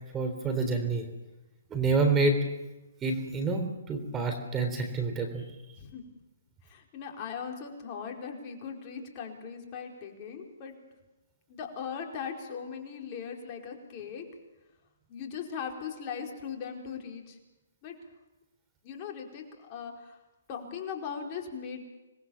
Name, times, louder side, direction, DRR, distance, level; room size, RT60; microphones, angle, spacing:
voice 1, 0.1-1.1 1.7-2.4 3.0-5.5, right 3 dB, 15° right, 5 dB, 3.6 m, -28 dB
voice 2, 6.6-10.7 11.5-14.2 15.1-17.4 17.8-18.0 18.8-20.2 20.5-21.8, left 6 dB, 35° left, 2 dB, 4.7 m, -39 dB
26.5 x 21.0 x 7.2 m, 1.1 s
hypercardioid pair, 145°, 0 cm